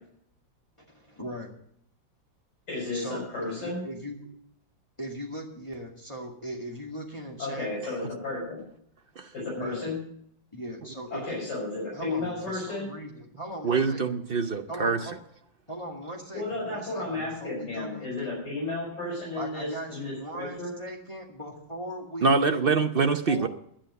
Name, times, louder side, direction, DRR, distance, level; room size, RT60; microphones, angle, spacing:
voice 1, 0.9-1.5 2.9-4.3 5.0-7.7 9.6-9.8 10.5-11.4 11.9-14.0 14.7-15.2 15.7-18.4 19.3-22.3 22.9-23.5, right 1 dB, 15° left, -1 dB, 2.0 m, -39 dB
voice 2, 2.7-3.8 7.4-8.6 9.3-10.0 11.1-12.9 16.3-20.7, left 2 dB, 65° left, -4 dB, 6.7 m, -33 dB
voice 3, 13.6-15.0 22.2-23.5, right 4 dB, 65° right, 6 dB, 0.5 m, -24 dB
11.5 x 10.0 x 6.7 m, 0.67 s
omnidirectional pair, 2.0 m